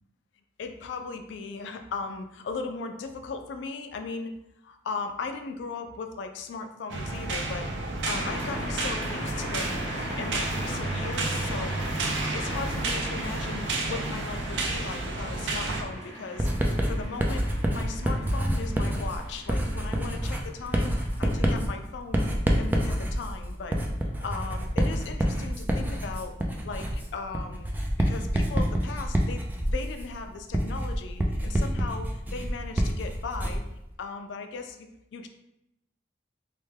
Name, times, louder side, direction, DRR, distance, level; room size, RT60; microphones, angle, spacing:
voice 1, 0.6-4.3 4.6-9.9 10.2-11.8 12.3-16.5 16.9-22.3 22.6-23.8 24.2-26.4 26.6-27.7 28.0-29.4 29.7-33.6 34.0-35.3, left 4 dB, 70° left, 6 dB, 0.3 m, -37 dB
sound 1, 6.9-15.8, right 2 dB, 75° right, 0.5 m, -31 dB
sound 2, 8.1-21.5, equal, 15° left, 0.9 m, -39 dB
Writing, 16.4-33.7, equal, 10° right, 0.3 m, -27 dB
3.3 x 2.1 x 3.2 m, 0.85 s
head